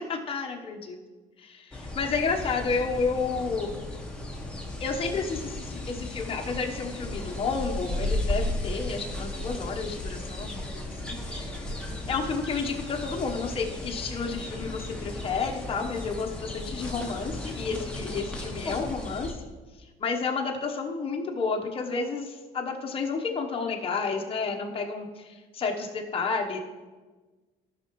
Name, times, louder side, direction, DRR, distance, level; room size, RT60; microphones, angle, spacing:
voice 1, 0.1-1.0 1.4-3.8 4.8-11.6 12.1-19.4 20.0-26.6, left 4 dB, 35° left, 1 dB, 1.0 m, -31 dB
sound 1, 1.7-19.3, left 1 dB, 5° left, 1.4 m, -35 dB
13.0 x 5.8 x 3.1 m, 1.3 s
cardioid pair, 110°, 17 cm